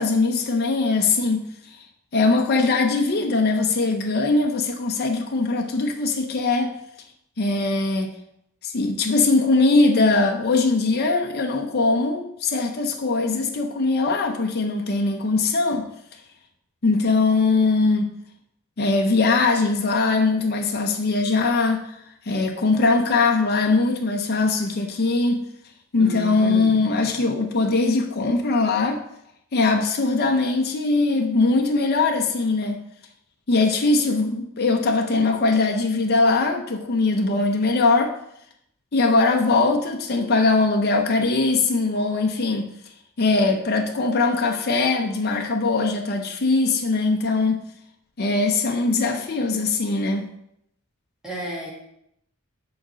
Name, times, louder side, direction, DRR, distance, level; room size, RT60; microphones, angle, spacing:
voice 1, 0.0-1.4 2.1-6.7 7.4-8.1 8.6-15.8 16.8-18.1 18.8-22.0 22.3-25.4 25.9-29.0 29.5-32.8 33.5-38.1 38.9-42.7 43.2-47.6 48.2-50.3, left 3 dB, 45° left, 3 dB, 0.7 m, -21 dB
voice 2, 26.0-26.9 51.2-51.7, left 1 dB, ahead, -5 dB, 2.4 m, -32 dB
7.8 x 4.0 x 6.1 m, 0.76 s
head